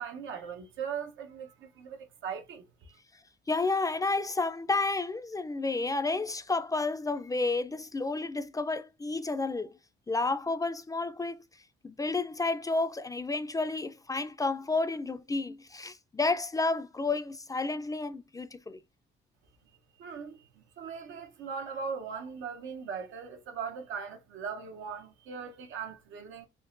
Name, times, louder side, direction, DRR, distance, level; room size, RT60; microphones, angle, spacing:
voice 1, 0.0-2.9 20.0-26.5, right 6 dB, 80° right, 0.8 m, -39 dB
voice 2, 3.5-9.7 10.1-11.4 11.8-18.8, left 3 dB, 20° left, 0.4 m, -31 dB
3.7 x 2.9 x 2.5 m
cardioid pair, 90°, 20 cm